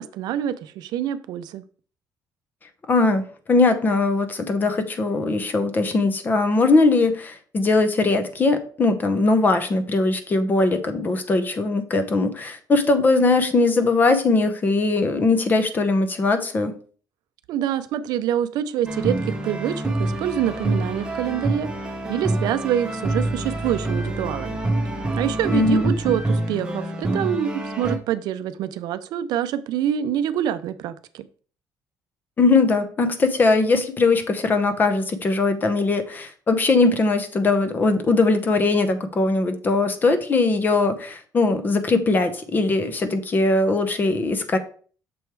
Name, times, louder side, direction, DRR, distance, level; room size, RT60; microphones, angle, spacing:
voice 1, 0.0-1.6 17.5-21.7 22.1-24.6 25.2-31.3, right 10 dB, 75° right, 12 dB, 0.5 m, -26 dB
voice 2, 2.9-16.7 25.5-25.9 32.4-44.6, left 3 dB, 25° left, 8 dB, 0.8 m, -20 dB
sound 1, 18.9-28.0, right 2 dB, 10° right, 0.9 m, -26 dB
6.9 x 3.2 x 4.6 m, 0.42 s
cardioid pair, 145°, 7 cm